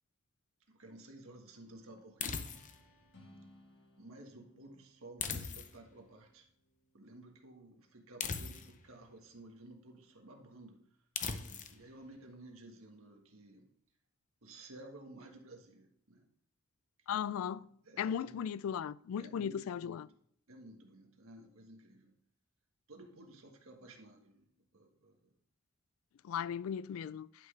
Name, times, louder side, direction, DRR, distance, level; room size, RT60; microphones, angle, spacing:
voice 1, 0.7-2.4 4.0-6.4 6.9-10.9 11.4-13.7 14.4-16.3 17.1-17.4 17.8-18.4 19.2-20.1 20.5-22.1 22.9-25.3, right 2 dB, 85° right, 1.5 m, -54 dB
sound 1, 2.2-2.9 5.2-6.0 8.2-8.9 11.2-11.8, left 6 dB, 40° left, 0.7 m, -39 dB
sound 2, 2.4-8.0, left 1 dB, 60° left, 1.7 m, -64 dB
voice 2, 17.1-17.7 18.0-20.1 26.2-27.3, left 8 dB, 80° left, 0.3 m, -37 dB
11.0 x 5.8 x 3.3 m
head